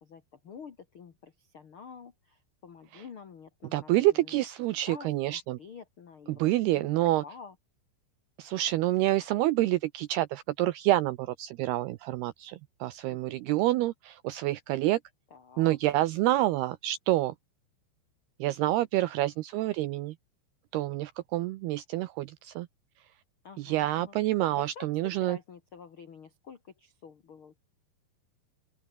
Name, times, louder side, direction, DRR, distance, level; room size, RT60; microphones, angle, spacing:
voice 1, 0.0-4.4 4.9-7.5 13.1-13.5 15.3-15.8 23.4-24.1 24.5-24.9 25.2-27.6, left 6 dB, 85° left, 1.1 m, -49 dB
voice 2, 3.7-5.6 6.3-7.2 8.4-15.0 15.6-17.3 18.4-20.2 20.7-22.7 23.6-25.4, right 16 dB, 80° right, 2.4 m, -28 dB
open air
omnidirectional pair, 5.3 m